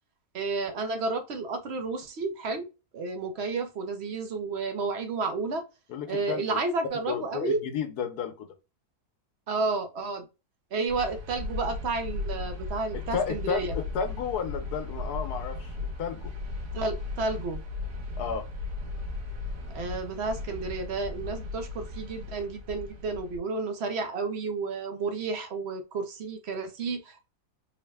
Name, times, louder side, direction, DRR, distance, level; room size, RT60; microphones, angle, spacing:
voice 1, 0.3-2.7 2.9-5.6 6.1-7.6 9.5-10.3 10.7-13.7 16.7-17.6 19.7-27.3, right 3 dB, 60° right, 0.7 m, -31 dB
voice 2, 5.9-6.6 7.1-8.5 13.1-16.3 18.2-18.5, left 7 dB, 85° left, 1.3 m, -32 dB
sound 1, 10.9-23.4, left 3 dB, 85° right, 1.8 m, -36 dB
3.9 x 2.2 x 3.3 m
omnidirectional pair, 1.6 m